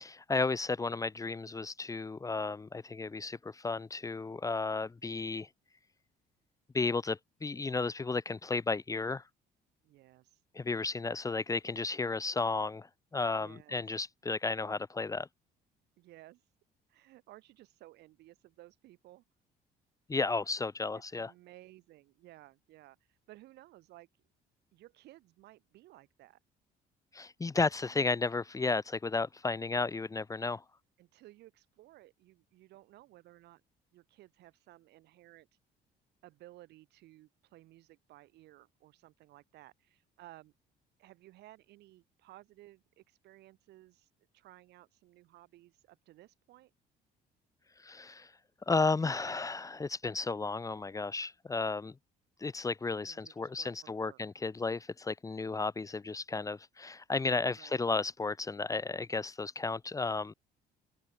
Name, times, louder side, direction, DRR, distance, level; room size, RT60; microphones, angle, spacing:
voice 1, 0.0-5.5 6.7-9.2 10.5-12.9 13.1-15.3 20.1-21.3 27.1-30.6 47.8-48.3 48.7-51.9 52.4-60.3, left 3 dB, 20° left, 1.1 m, -33 dB
voice 2, 9.8-10.4 13.4-13.8 16.0-16.4 16.9-19.2 21.1-24.1 24.7-26.4 31.0-33.6 33.9-35.5 36.2-40.5 41.0-44.1 44.3-46.7 53.1-54.2 57.6-57.8, right 16 dB, 80° right, 4.0 m, -57 dB
open air
cardioid pair, 110°, 17 cm